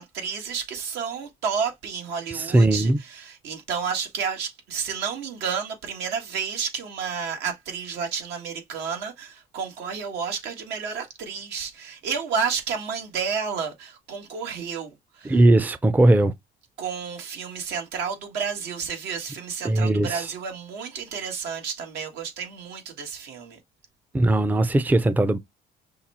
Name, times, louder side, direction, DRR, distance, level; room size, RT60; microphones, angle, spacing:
voice 1, 0.0-15.4 16.8-23.6, right 6 dB, 85° right, 1.6 m, -31 dB
voice 2, 2.3-3.0 15.2-16.3 19.6-20.3 24.1-25.4, right 2 dB, 10° right, 0.4 m, -19 dB
5.5 x 2.2 x 4.3 m
cardioid pair, 110°, 17 cm